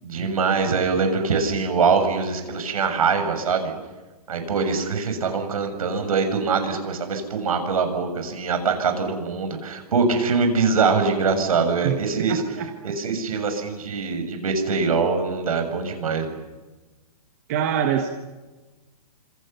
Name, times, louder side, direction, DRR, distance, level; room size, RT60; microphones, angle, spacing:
voice 1, 0.0-3.7 4.3-12.4 12.8-16.4, right 5 dB, 65° right, 7 dB, 7.0 m, -23 dB
voice 2, 12.3-12.7 17.5-18.1, right 9 dB, 25° right, 5 dB, 1.3 m, -24 dB
30.0 x 27.0 x 6.9 m, 1.2 s
hypercardioid pair, 180°, 20 cm